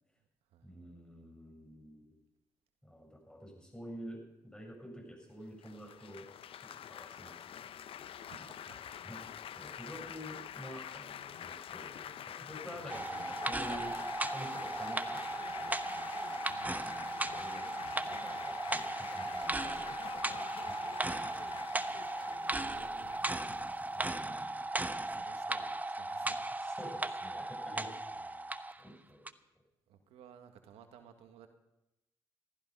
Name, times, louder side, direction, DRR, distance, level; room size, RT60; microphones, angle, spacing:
voice 1, 0.6-2.1 2.8-6.3 6.6-7.7 8.3-15.8 17.2-17.7 17.9-19.8 20.2-20.7 22.5-23.0 23.9-24.6 26.6-27.9 28.8-29.2, equal, 10° left, 1 dB, 7.9 m, -49 dB
Laughter / Applause / Chatter, 5.6-24.7, left 9 dB, 70° left, 0.7 m, -47 dB
voice 2, 8.2-8.8 12.7-13.1 16.5-16.8 19.3-20.0 22.0-23.4 23.9-26.5 28.1-28.5 29.9-31.5, right 8 dB, 85° right, 7 dB, 1.6 m, -57 dB
sound 1, 12.9-28.8 29.3-29.4, right 2 dB, 15° right, 0.9 m, -37 dB
15.5 x 14.0 x 5.5 m, 0.92 s
supercardioid pair, 45°, 10 cm